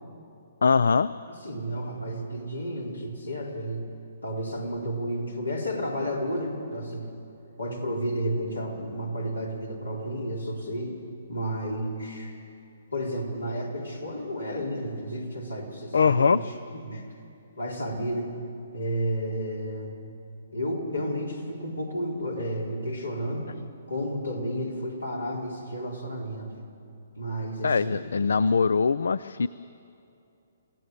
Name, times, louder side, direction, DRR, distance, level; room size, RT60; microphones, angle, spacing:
voice 1, 0.6-1.1 15.9-16.4 27.6-29.5, left 5 dB, 70° left, 17 dB, 0.4 m, -22 dB
voice 2, 1.3-3.8 4.2-7.1 7.6-10.9 11.3-12.4 12.9-17.1 17.6-18.3 18.7-19.9 20.5-23.5 23.9-26.5 27.1-28.5, equal, 85° left, -1 dB, 4.2 m, -32 dB
27.0 x 16.5 x 6.7 m, 2.6 s
figure-of-eight pair, 125°, 0 cm